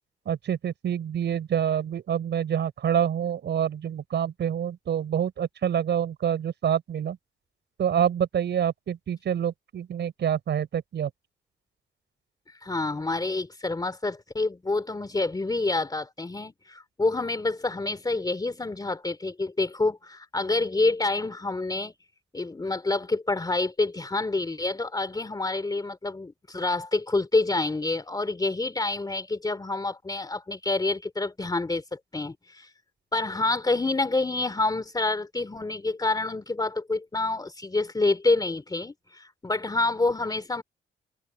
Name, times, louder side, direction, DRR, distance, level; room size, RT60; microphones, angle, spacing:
voice 1, 0.2-7.2 7.8-11.1, right 9 dB, 60° right, 5.0 m, -27 dB
voice 2, 12.6-21.9 22.3-32.7 33.1-40.6, left 3 dB, 20° left, 3.0 m, -27 dB
cardioid pair, 90°, 20 cm